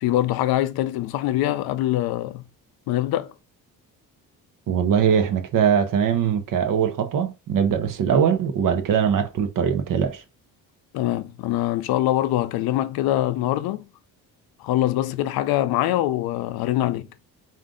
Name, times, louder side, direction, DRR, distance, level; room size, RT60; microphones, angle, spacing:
voice 1, 0.0-2.5 2.9-3.3 10.9-13.9 14.6-17.1, left 14 dB, 90° left, 0.5 m, -23 dB
voice 2, 4.7-10.2, right 7 dB, 60° right, 0.7 m, -21 dB
3.8 x 2.5 x 3.7 m
cardioid pair, 105°, 36 cm